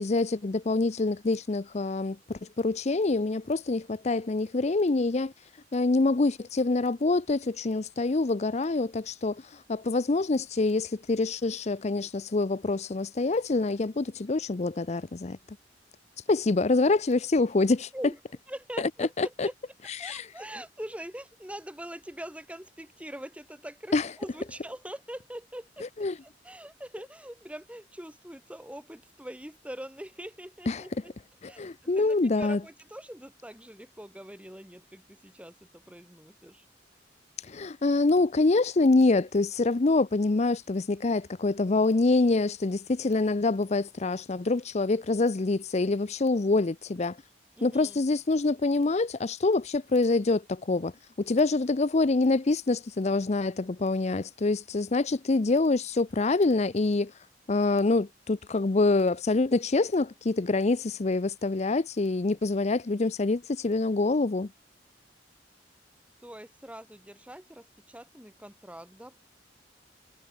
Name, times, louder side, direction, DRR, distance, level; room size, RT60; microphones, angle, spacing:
voice 1, 0.0-5.3 5.7-15.4 16.3-17.9 18.8-19.5 20.0-20.3 23.9-24.1 26.0-26.1 30.7-30.8 31.4-32.6 37.4-47.2 47.6-50.9 51.2-57.1 57.5-64.5, left 3 dB, 40° left, 0.6 m, -26 dB
voice 2, 18.5-19.5 19.8-25.9 26.2-31.1 31.5-36.6 47.6-48.0 66.2-69.2, equal, 5° right, 6.4 m, -43 dB
head